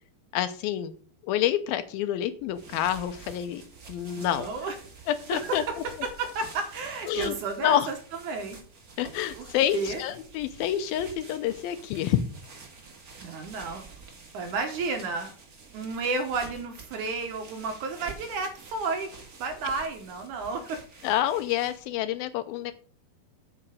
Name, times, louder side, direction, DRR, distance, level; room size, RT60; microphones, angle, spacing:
voice 1, 0.3-0.9 1.2-3.6 3.9-4.5 5.1-5.6 7.1-7.3 7.6-7.9 9.0-12.2 21.0-22.7, left 11 dB, 80° left, 11 dB, 2.4 m, -28 dB
sound 1, 2.4-22.0, right 4 dB, 40° right, 1.3 m, -48 dB
voice 2, 4.2-4.7 5.3-5.7 6.2-7.9 8.3-8.6 9.4-9.5 9.7-10.0 13.2-13.9 14.3-15.3 15.7-19.1 19.4-20.8, right 4 dB, 65° right, 5 dB, 2.2 m, -32 dB
8.9 x 5.9 x 6.3 m, 0.44 s
omnidirectional pair, 4.4 m